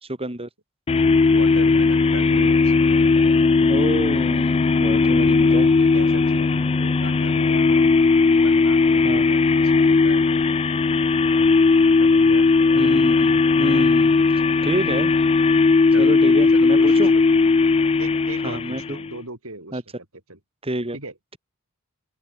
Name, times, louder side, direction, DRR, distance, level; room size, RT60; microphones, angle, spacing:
voice 1, 0.2-0.5 3.7-5.7 9.0-9.2 12.8-14.1 14.6-15.1 16.0-17.1 18.4-19.0 19.7-19.8 20.6-21.0, right 1 dB, 25° right, 4.8 m, -28 dB
sound 1, 0.9-19.1, left 4 dB, 25° left, 0.3 m, -17 dB
voice 2, 1.3-2.7 5.0-5.4 5.8-8.2 8.4-10.4 12.0-12.5 15.9-17.0 18.0-19.8 20.3-20.4 20.9-21.1, right 2 dB, 70° right, 7.9 m, -38 dB
head